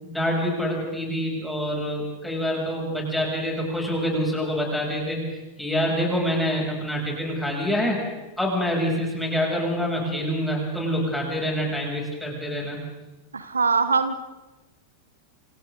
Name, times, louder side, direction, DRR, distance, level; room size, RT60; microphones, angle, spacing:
voice 1, 0.0-5.2 5.6-8.0 8.4-12.8, equal, 5° left, -2 dB, 7.6 m, -26 dB
voice 2, 13.3-14.1, right 4 dB, 75° right, 11 dB, 1.2 m, -22 dB
28.5 x 27.0 x 3.9 m, 1.1 s
figure-of-eight pair, 90°, 0 cm